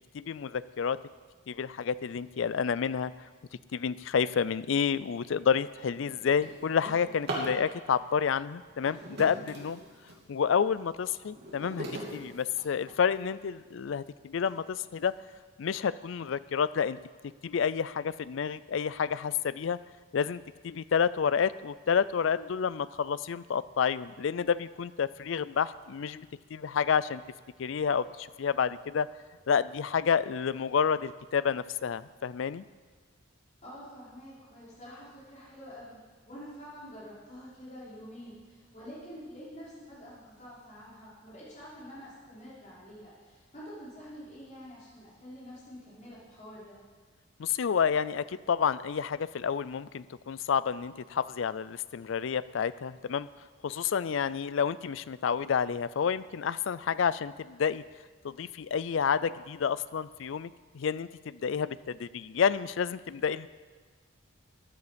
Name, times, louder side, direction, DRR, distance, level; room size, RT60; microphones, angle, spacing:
voice 1, 0.1-1.0 1.5-3.1 3.7-9.8 10.3-11.9 12.1-15.1 15.6-17.0 17.4-19.8 20.1-27.2 27.6-29.1 29.5-32.6 47.4-53.3 53.6-57.8 58.2-63.5, left 7 dB, 65° left, 17 dB, 0.4 m, -29 dB
Drawer open or close, 4.9-5.1 5.6-7.6 8.6-10.3 10.8-13.2 13.9-14.0 14.5-14.6 14.9-15.3, right 1 dB, 50° right, 2.9 m, -41 dB
voice 2, 33.6-36.0 36.3-46.8, equal, 35° left, -9 dB, 5.2 m, -47 dB
14.5 x 11.0 x 5.1 m, 1.5 s
head